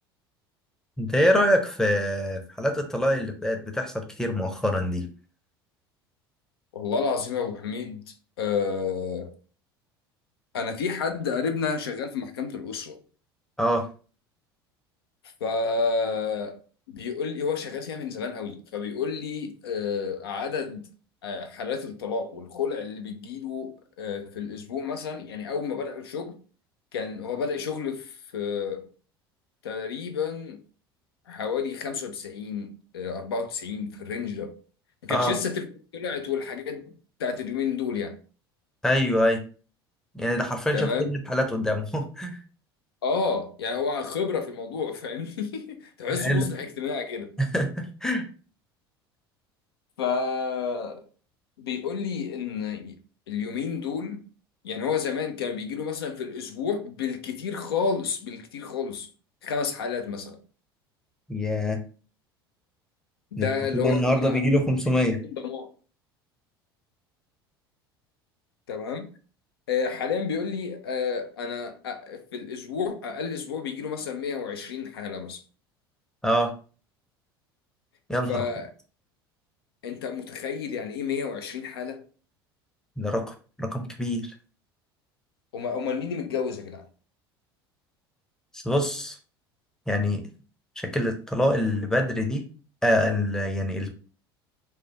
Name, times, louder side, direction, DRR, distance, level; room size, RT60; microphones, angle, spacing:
voice 1, 1.0-5.1 13.6-13.9 35.1-35.3 38.8-39.4 40.1-42.4 46.1-46.5 47.4-48.3 61.3-61.8 63.4-63.5 63.7-65.2 76.2-76.5 78.1-78.4 83.0-84.3 88.5-89.2 89.9-90.2 90.8-92.5 92.8-93.9, equal, 5° left, 0.6 m, -25 dB
voice 2, 6.7-8.0 8.4-9.3 10.5-13.0 15.4-16.6 16.9-20.9 21.2-26.4 26.9-28.9 29.6-30.6 31.3-34.5 35.0-35.7 35.9-36.8 37.2-38.2 40.7-41.1 43.0-47.3 50.0-51.1 51.6-53.0 53.3-54.2 54.6-59.1 59.4-60.4 63.3-64.4 65.3-65.7 68.7-69.1 69.7-75.4 78.3-78.7 79.8-82.0 85.5-86.9, left 5 dB, 75° left, 0.4 m, -30 dB
3.1 x 2.2 x 2.8 m
figure-of-eight pair, 70°, 13 cm